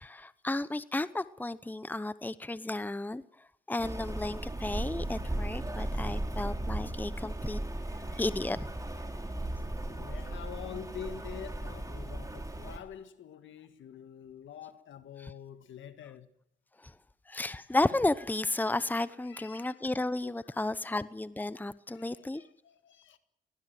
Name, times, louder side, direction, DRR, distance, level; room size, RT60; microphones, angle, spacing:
voice 1, 0.0-3.2 3.7-7.6 8.1-8.7 15.2-15.3 16.8-16.9 17.3-22.4, left 2 dB, 10° left, 0.8 m, -33 dB
Rain, 3.8-12.8, right 1 dB, 15° right, 3.4 m, -36 dB
voice 2, 9.8-16.3 19.2-19.8 20.5-20.8 21.9-23.2, left 9 dB, 80° left, 1.7 m, -46 dB
20.0 x 18.5 x 7.7 m
supercardioid pair, 55°, 20 cm